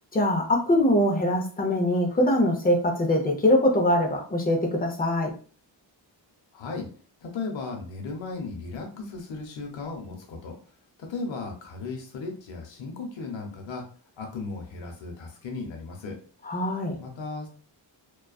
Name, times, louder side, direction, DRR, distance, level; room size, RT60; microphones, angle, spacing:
voice 1, 0.1-5.3 16.4-17.0, left 1 dB, 20° left, 2 dB, 0.6 m, -23 dB
voice 2, 6.5-6.9 7.2-10.5 11.1-13.8 14.2-16.2 17.0-17.6, left 3 dB, 80° left, 2 dB, 0.7 m, -36 dB
2.3 x 2.3 x 2.3 m, 0.40 s
cardioid pair, 75°, 45 cm